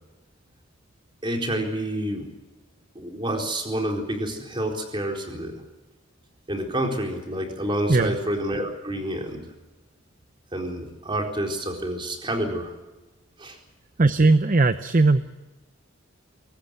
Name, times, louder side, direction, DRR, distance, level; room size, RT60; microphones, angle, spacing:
voice 1, 1.2-2.3 2.9-5.6 6.5-9.5 10.5-12.7 13.4-13.6, right 1 dB, 25° right, 1 dB, 4.3 m, -28 dB
voice 2, 14.0-15.3, right 3 dB, 40° right, 11 dB, 0.7 m, -18 dB
23.5 x 19.0 x 7.8 m, 1.1 s
head